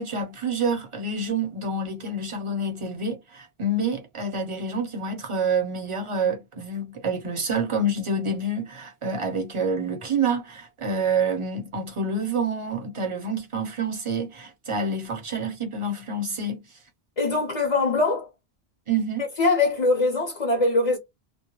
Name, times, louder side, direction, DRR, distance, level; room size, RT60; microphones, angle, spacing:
voice 1, 0.0-16.6 18.9-19.3, right 3 dB, 35° right, 0.6 m, -27 dB
voice 2, 17.2-18.3 19.4-21.0, left 3 dB, 40° left, 0.6 m, -22 dB
2.2 x 2.1 x 2.9 m
omnidirectional pair, 1.1 m